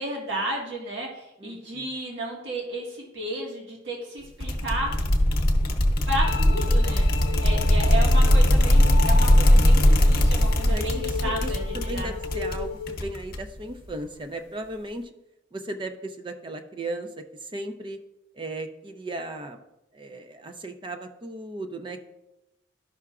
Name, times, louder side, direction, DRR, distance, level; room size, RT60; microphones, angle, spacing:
voice 1, 0.0-4.9 6.1-7.1 7.4-12.1, right 1 dB, 75° right, -2 dB, 1.6 m, -33 dB
voice 2, 1.4-1.9 7.2-7.7 10.7-15.1 15.5-18.0 18.3-19.6 19.9-22.0, right 1 dB, 25° right, 6 dB, 0.5 m, -36 dB
sound 1, 4.4-13.6, left 1 dB, 55° left, 0.8 m, -20 dB
sound 2, 6.1-13.1, left 5 dB, 80° left, 0.4 m, -35 dB
12.0 x 5.7 x 2.4 m, 0.91 s
head